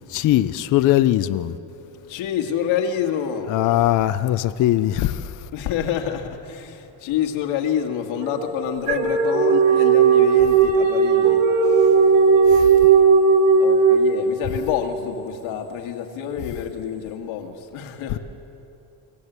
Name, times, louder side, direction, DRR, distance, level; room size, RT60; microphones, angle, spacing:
voice 1, 0.0-1.5 3.5-5.3 12.5-12.7 18.1-18.2, left 13 dB, 45° left, 0.5 m, -20 dB
voice 2, 2.1-3.7 5.5-11.4 13.6-18.2, left 8 dB, 90° left, 2.2 m, -27 dB
sound 1, 8.2-14.6, right 5 dB, 65° right, 3.3 m, -16 dB
25.5 x 16.5 x 8.2 m
cardioid pair, 165°, 46 cm